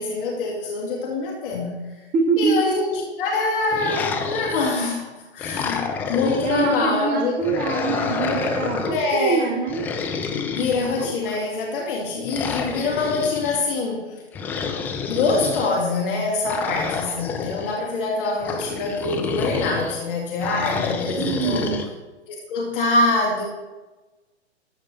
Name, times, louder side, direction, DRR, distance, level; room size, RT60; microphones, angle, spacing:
voice 1, 0.0-2.1 2.4-8.0 8.9-9.6 10.5-14.2 15.0-21.7 22.3-23.4, left 3 dB, 50° left, -1 dB, 2.3 m, -25 dB
voice 2, 2.1-2.6 6.4-9.9 21.2-21.9, right 5 dB, 25° right, 3 dB, 0.9 m, -24 dB
sound 1, 3.7-4.9 5.4-6.8 7.4-9.0 9.7-11.4 12.3-13.6 14.3-15.7 16.4-17.8 18.4-20.0 20.4-21.9, left 5 dB, 5° left, 0.3 m, -28 dB
13.5 x 4.7 x 7.0 m, 1.1 s
figure-of-eight pair, 120°, 34 cm